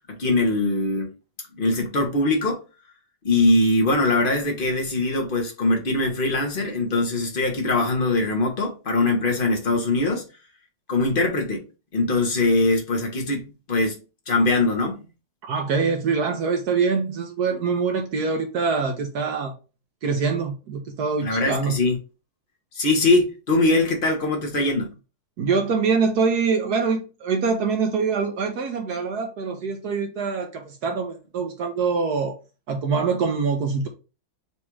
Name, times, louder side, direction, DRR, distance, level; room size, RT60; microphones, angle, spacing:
voice 1, 0.1-1.1 1.6-2.6 3.2-10.2 10.9-11.6 11.9-14.0 14.3-15.0 21.2-22.0 22.7-24.9, left 2 dB, 50° left, 0.6 m, -22 dB
voice 2, 15.5-19.5 20.0-21.8 25.4-32.3 32.7-33.9, right 5 dB, 70° right, 1.0 m, -24 dB
4.2 x 2.4 x 4.4 m
omnidirectional pair, 2.2 m